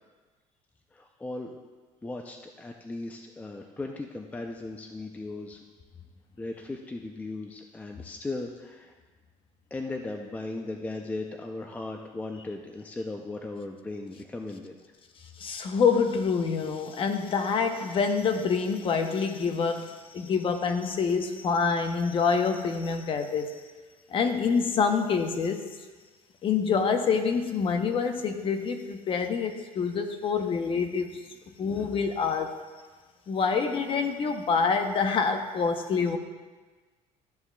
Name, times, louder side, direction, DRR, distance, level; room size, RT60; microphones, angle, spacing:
voice 1, 0.9-1.6 2.0-5.6 6.4-8.9 9.7-14.7 20.2-20.3, left 2 dB, 10° left, 3 dB, 0.5 m, -37 dB
voice 2, 15.4-23.6 24.1-25.6 26.4-31.2 31.6-32.5 33.3-36.2, left 5 dB, 40° left, 6 dB, 0.8 m, -26 dB
13.0 x 7.1 x 2.3 m, 1.4 s
cardioid pair, 130°, 14 cm